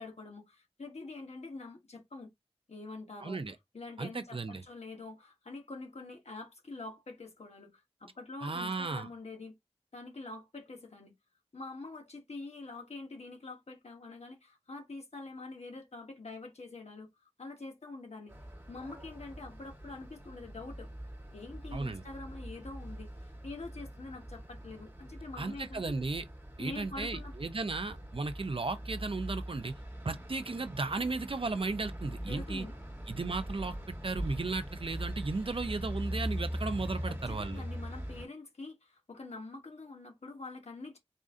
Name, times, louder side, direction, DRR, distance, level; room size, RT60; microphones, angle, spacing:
voice 1, 0.0-2.3 2.7-3.4 3.7-9.6 9.9-11.1 11.5-18.3 18.7-20.9 21.3-23.1 23.4-26.0 26.6-27.3 32.3-32.7 37.1-41.0, left 3 dB, 80° left, 1.3 m, -45 dB
voice 2, 3.2-3.5 4.0-4.6 8.4-9.1 21.7-22.0 25.4-26.2 26.6-29.7 30.0-32.7 33.1-37.6, right 3 dB, 55° right, 0.6 m, -35 dB
sound 1, 18.3-38.3, equal, 20° right, 1.5 m, -42 dB
4.1 x 2.6 x 3.7 m
wide cardioid pair, 55°, 11 cm